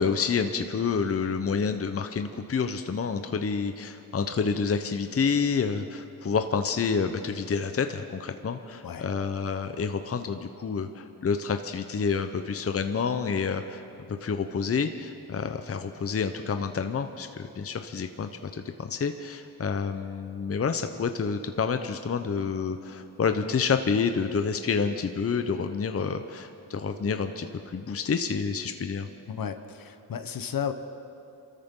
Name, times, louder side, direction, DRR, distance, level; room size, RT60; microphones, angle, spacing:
voice 1, 0.0-13.8 14.1-29.1, left 5 dB, 35° left, 7 dB, 0.8 m, -28 dB
voice 2, 29.3-30.7, left 8 dB, 60° left, 9 dB, 1.0 m, -33 dB
26.5 x 13.5 x 3.8 m, 2.6 s
cardioid pair, 75°, 39 cm